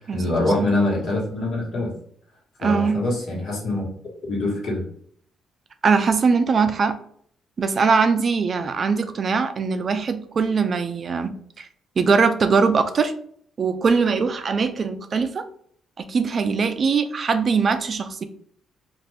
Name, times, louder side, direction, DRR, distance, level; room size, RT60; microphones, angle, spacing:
voice 1, 0.1-1.9 2.6-3.9 4.3-4.8, left 2 dB, 65° left, -3 dB, 1.4 m, -24 dB
voice 2, 2.6-3.0 5.8-7.0 7.6-11.7 12.0-13.1 13.6-15.5 16.0-18.2, right 5 dB, 45° right, 9 dB, 0.3 m, -21 dB
2.6 x 2.5 x 3.3 m, 0.62 s
cardioid pair, 90°, 0 cm